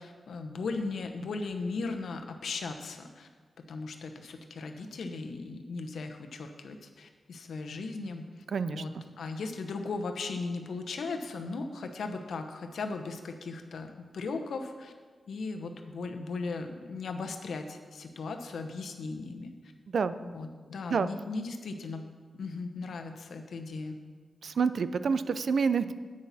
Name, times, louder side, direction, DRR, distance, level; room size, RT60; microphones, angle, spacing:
voice 1, 0.0-3.3 3.6-8.3 8.7-8.9 9.2-14.9 15.3-19.5 20.2-22.1 22.3-24.0, left 3 dB, 85° left, 5 dB, 0.9 m, -37 dB
voice 2, 8.5-8.8 19.9-20.1 20.9-21.1 24.4-25.9, right 5 dB, 70° right, 13 dB, 0.4 m, -27 dB
10.0 x 8.6 x 4.1 m, 1.5 s
wide cardioid pair, 115°, 0 cm